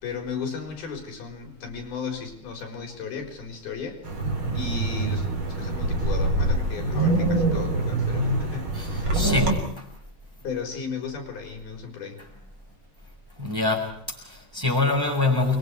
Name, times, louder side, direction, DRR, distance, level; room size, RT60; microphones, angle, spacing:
voice 1, 0.0-4.0 4.5-9.3 10.4-12.3, left 5 dB, 80° left, 3 dB, 6.1 m, -35 dB
Wind, 4.0-9.6, right 2 dB, 35° right, 4.2 m, -25 dB
voice 2, 8.7-9.9 13.4-15.6, left 3 dB, 5° right, -1 dB, 5.9 m, -25 dB
29.5 x 23.5 x 4.8 m, 0.70 s
omnidirectional pair, 4.3 m